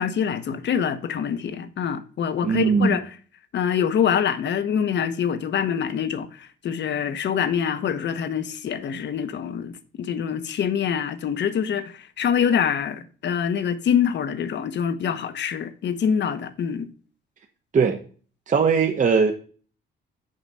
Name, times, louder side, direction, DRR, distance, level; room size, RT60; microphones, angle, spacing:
voice 1, 0.0-3.1 3.5-16.9, left 8 dB, 60° left, 1.0 m, -25 dB
voice 2, 2.4-2.9 17.7-18.0 18.5-19.3, right 5 dB, 40° right, 1.0 m, -19 dB
7.3 x 6.6 x 5.4 m
cardioid pair, 90°, 20 cm